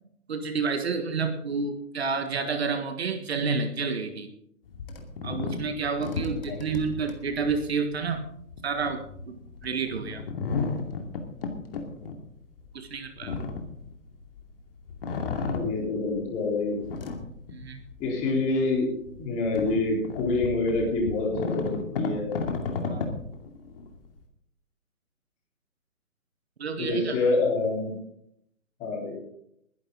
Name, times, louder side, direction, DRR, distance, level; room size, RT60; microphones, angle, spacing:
voice 1, 0.3-4.3 5.2-8.3 8.6-10.2 12.7-13.5 17.5-17.8 22.9-23.1 26.6-27.2, right 5 dB, 45° right, 8 dB, 1.6 m, -30 dB
sound 1, 4.7-14.5 14.9-16.3 16.7-18.1 18.5-18.6 19.1-24.2, left 4 dB, 40° left, 2.5 m, -34 dB
voice 2, 15.5-16.8 18.0-18.9 19.2-22.3 26.8-28.0 28.8-29.2, left 3 dB, 15° left, -1 dB, 4.0 m, -26 dB
21.0 x 11.0 x 3.9 m, 0.70 s
figure-of-eight pair, 145°, 43 cm